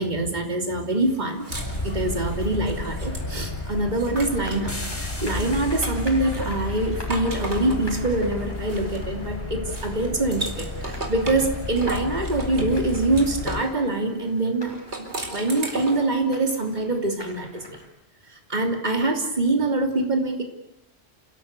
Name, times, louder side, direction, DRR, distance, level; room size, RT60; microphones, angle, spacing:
voice 1, 0.0-1.4 1.8-17.8 18.3-20.4, right 2 dB, 40° right, 3 dB, 3.2 m, -25 dB
sound 1, 1.0-4.7 5.1-9.3 9.7-13.7 14.7-16.1, right 1 dB, 80° right, 4.6 m, -37 dB
sound 2, 1.5-13.6, left 2 dB, 50° left, 5.4 m, -32 dB
sound 3, 3.1-17.9, equal, 20° left, 6.3 m, -46 dB
29.5 x 16.5 x 8.3 m, 0.85 s
omnidirectional pair, 1.1 m